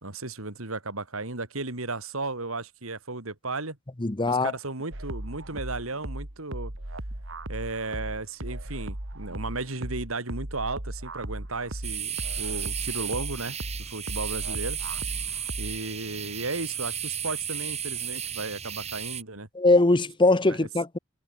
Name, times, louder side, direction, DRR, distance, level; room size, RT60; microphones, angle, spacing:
voice 1, 0.0-3.8 4.3-6.7 7.5-14.8 15.6-19.5, right 3 dB, 80° right, 3.3 m, -34 dB
voice 2, 4.0-4.5 19.5-21.0, left 2 dB, 25° left, 0.9 m, -21 dB
sound 1, 4.9-15.9, right 1 dB, 65° right, 2.8 m, -37 dB
sound 2, 11.8-19.2, right 9 dB, 30° right, 4.5 m, -34 dB
head